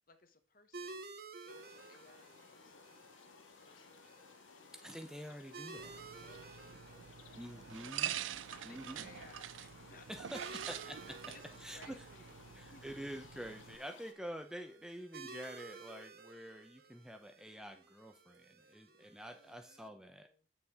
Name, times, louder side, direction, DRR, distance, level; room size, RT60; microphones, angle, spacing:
voice 1, 0.1-1.0 1.4-3.1 3.6-4.0 4.6-4.7 6.2-7.6 8.5-10.6 11.3-12.8 16.8-17.0 19.2-20.5, left 4 dB, 45° left, 9 dB, 1.0 m, -62 dB
sound 1, 0.7-19.9, right 4 dB, 50° right, 0.8 m, -54 dB
sound 2, 1.5-14.1, left 5 dB, 90° left, 0.9 m, -59 dB
voice 2, 4.7-6.0 7.4-8.2 8.6-9.1 10.1-11.2 11.6-11.9 12.5-20.3, equal, 5° right, 5 dB, 0.7 m, -47 dB
sound 3, 5.8-13.8, right 10 dB, 90° right, 0.5 m, -46 dB
8.3 x 7.1 x 3.7 m, 0.34 s
head